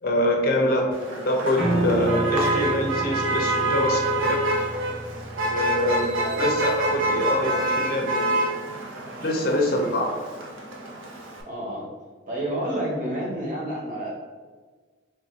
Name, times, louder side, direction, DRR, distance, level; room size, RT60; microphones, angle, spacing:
voice 1, 0.0-4.4 5.3-6.1 6.4-8.4 9.2-10.1, left 1 dB, 50° left, 1 dB, 0.6 m, -25 dB
Motor vehicle (road), 0.9-11.4, right 1 dB, 85° right, 0.7 m, -27 dB
Piano, 1.6-7.7, right 1 dB, 5° right, 0.9 m, -31 dB
voice 2, 6.2-6.5 9.7-9.9 11.4-11.9 12.3-14.1, right 1 dB, 40° right, -4 dB, 1.0 m, -30 dB
3.2 x 2.6 x 4.2 m, 1.4 s
head